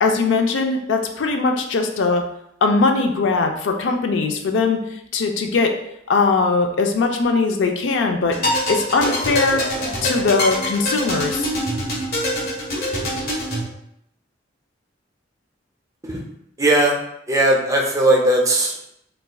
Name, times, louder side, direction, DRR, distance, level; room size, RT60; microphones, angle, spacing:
voice 1, 0.0-2.3 2.6-4.8 5.1-5.8 6.1-8.4 8.7-9.7 10.0-11.5, left 4 dB, 75° left, 4 dB, 0.4 m, -20 dB
sound 1, 8.3-13.6, equal, 55° left, 0.9 m, -24 dB
voice 2, 16.6-17.0 17.3-18.9, right 1 dB, 20° right, 0 dB, 0.5 m, -18 dB
4.0 x 2.3 x 2.2 m, 0.77 s
head